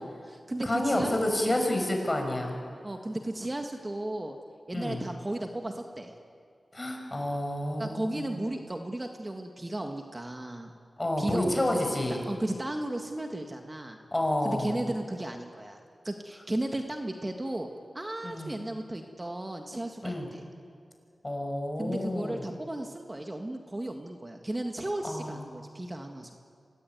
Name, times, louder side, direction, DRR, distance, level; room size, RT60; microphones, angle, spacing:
voice 1, 0.0-1.7 2.8-4.4 4.7-6.1 7.8-10.7 11.2-11.8 12.3-14.0 14.4-17.7 17.9-20.4 21.8-26.3, right 1 dB, 30° right, 4 dB, 1.8 m, -35 dB
voice 2, 0.6-2.6 4.7-5.0 6.7-8.4 11.0-12.2 14.1-14.7 18.2-18.6 20.0-20.3 21.2-22.4 25.0-25.4, left 1 dB, 25° left, 3 dB, 6.3 m, -29 dB
26.5 x 18.0 x 9.5 m, 2.3 s
cardioid pair, 50°, 0 cm